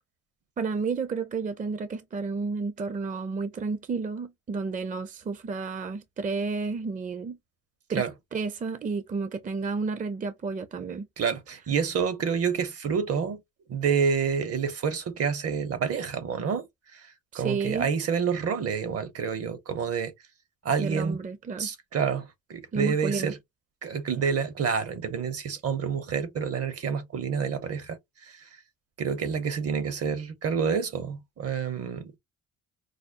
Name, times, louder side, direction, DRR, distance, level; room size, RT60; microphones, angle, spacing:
voice 1, 0.6-7.4 7.9-8.1 8.3-11.1 17.3-17.9 20.8-21.7 22.7-23.3, right 4 dB, 25° right, 0.5 m, -31 dB
voice 2, 11.2-13.4 13.7-16.7 16.9-17.1 17.3-20.1 20.6-21.2 21.6-23.4 23.8-28.5 29.0-32.2, right 6 dB, 50° right, 0.8 m, -28 dB
4.9 x 2.1 x 2.5 m
cardioid pair, 90°, 30 cm